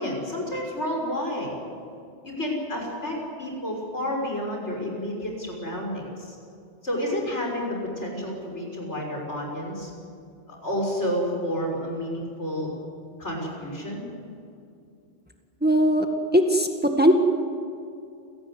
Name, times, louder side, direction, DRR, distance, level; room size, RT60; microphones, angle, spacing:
voice 1, 0.0-1.5 2.2-6.4 6.8-9.9 10.5-12.7 13.2-14.1, equal, 75° left, 0 dB, 6.5 m, -30 dB
voice 2, 15.6-16.1 16.3-17.1, equal, 10° right, 4 dB, 1.9 m, -19 dB
28.5 x 17.5 x 9.7 m, 2.5 s
omnidirectional pair, 1.2 m